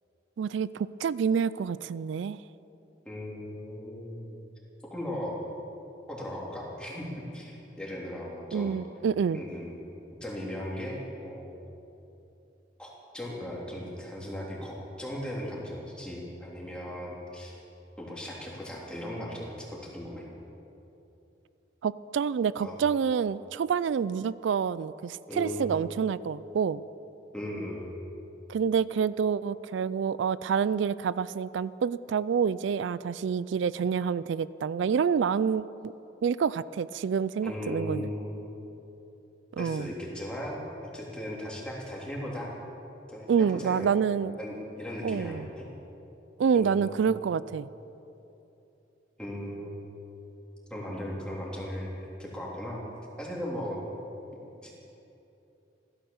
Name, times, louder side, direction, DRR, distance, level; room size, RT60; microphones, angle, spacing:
voice 1, 0.4-2.4 8.5-9.4 21.8-26.8 28.5-35.9 36.2-38.1 39.5-39.9 43.3-44.4 45.0-45.5 46.4-47.7, right 6 dB, 85° right, 17 dB, 0.3 m, -28 dB
voice 2, 3.0-4.4 4.9-5.4 6.1-8.8 9.3-9.8 10.2-11.5 12.8-17.6 18.0-20.2 22.6-22.8 25.3-25.8 27.3-27.9 37.4-38.7 39.6-42.5 43.1-43.9 44.4-45.7 46.5-47.3 49.2-49.8 50.7-52.8 53.2-53.8 54.3-54.7, equal, 5° left, -4 dB, 3.1 m, -37 dB
16.0 x 13.0 x 7.1 m, 3.0 s
head